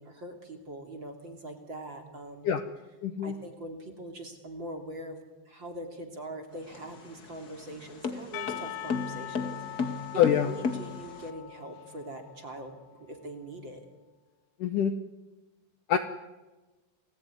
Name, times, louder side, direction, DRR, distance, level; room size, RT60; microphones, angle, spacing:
voice 1, 0.0-2.5 3.2-5.2 5.4-10.1 10.4-13.8, right 1 dB, 30° right, 5 dB, 2.9 m, -42 dB
voice 2, 3.0-3.3 10.2-10.5 14.6-14.9 15.9-16.0, left 9 dB, 90° left, 9 dB, 1.8 m, -24 dB
sound 1, 6.5-11.3, left 5 dB, 45° left, 1.2 m, -35 dB
Percussion / Church bell, 8.3-13.1, left 11 dB, 70° left, 3.3 m, -42 dB
30.0 x 20.0 x 9.8 m, 1.2 s
omnidirectional pair, 5.4 m